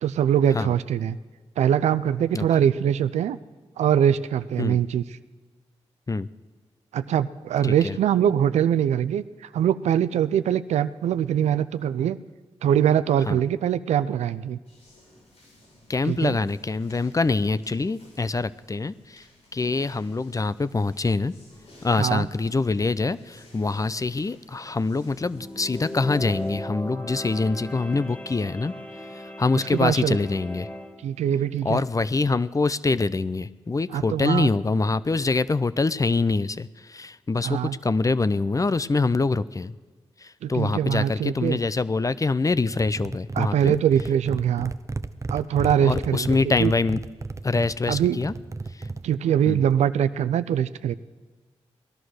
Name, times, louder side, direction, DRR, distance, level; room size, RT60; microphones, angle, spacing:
voice 1, 0.0-1.2 1.6-3.4 3.8-5.0 6.9-9.2 9.5-12.2 12.6-14.6 16.0-16.4 22.0-22.3 29.7-30.2 31.0-31.8 33.9-34.5 37.4-37.8 40.4-41.6 43.4-44.7 45.3-46.7 47.9-48.2 49.0-50.9, right 9 dB, 85° right, 15 dB, 0.4 m, -23 dB
voice 2, 7.6-7.9 13.3-13.4 15.9-19.2 19.5-21.3 21.8-28.7 29.4-30.7 31.6-39.7 40.2-43.7 45.8-47.0 47.4-48.3 49.5-49.6, left 3 dB, 30° left, 17 dB, 0.6 m, -25 dB
sound 1, 14.6-26.5, left 1 dB, 75° left, 6.5 m, -53 dB
sound 2, 25.2-31.0, left 1 dB, 15° left, 2.1 m, -37 dB
sound 3, 42.7-49.2, right 3 dB, 25° right, 0.6 m, -34 dB
18.0 x 11.5 x 6.4 m, 1.4 s
supercardioid pair, 45°, 11 cm